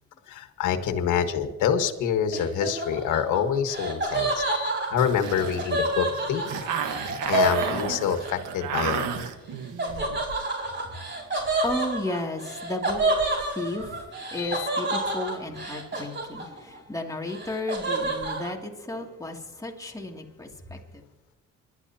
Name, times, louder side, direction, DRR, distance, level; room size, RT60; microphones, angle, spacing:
voice 1, 0.3-6.4 7.3-9.0 14.4-14.7, left 8 dB, 85° left, 7 dB, 1.6 m, -26 dB
Laughter, 2.3-8.4 9.8-16.8 17.1-18.5, right 2 dB, 35° right, 4.6 m, -29 dB
sound 1, 5.0-10.2, right 8 dB, 90° right, 1.5 m, -32 dB
voice 2, 10.8-13.0 13.4-21.0, left 2 dB, 10° left, 0 dB, 2.5 m, -34 dB
28.5 x 12.0 x 2.9 m, 1.1 s
cardioid pair, 90°, 30 cm